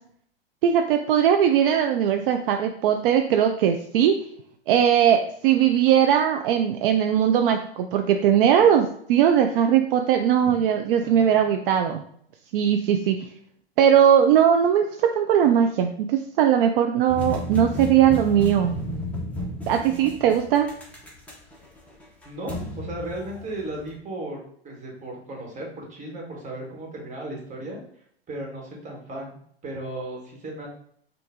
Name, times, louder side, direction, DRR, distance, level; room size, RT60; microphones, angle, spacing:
voice 1, 0.6-4.2 4.7-12.0 12.5-13.2 13.8-18.7 19.7-20.7, right 9 dB, 60° right, 5 dB, 0.5 m, -19 dB
sound 1, 17.1-23.9, left 1 dB, 5° left, 1.0 m, -33 dB
voice 2, 22.2-24.4 24.6-27.8 28.3-30.7, right 1 dB, 25° right, -1 dB, 1.6 m, -35 dB
5.6 x 2.6 x 3.6 m, 0.64 s
hypercardioid pair, 120°, 31 cm